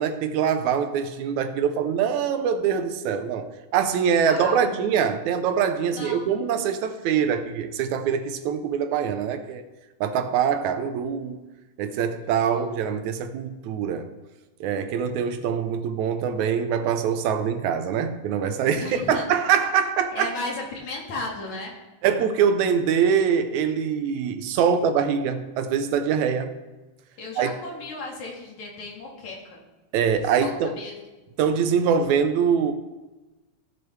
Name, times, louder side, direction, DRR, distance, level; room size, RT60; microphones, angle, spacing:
voice 1, 0.0-9.6 10.0-11.5 11.8-14.1 14.6-20.3 22.0-26.5 27.4-27.5 29.9-30.8 31.4-32.7, right 7 dB, 80° right, 9 dB, 2.0 m, -24 dB
voice 2, 4.3-4.7 5.9-6.2 12.2-12.7 15.0-15.5 18.8-19.2 20.1-21.7 24.6-24.9 27.2-29.6 30.2-31.0, left 2 dB, 75° left, -2 dB, 3.4 m, -35 dB
16.0 x 6.9 x 3.3 m, 1.1 s
omnidirectional pair, 3.4 m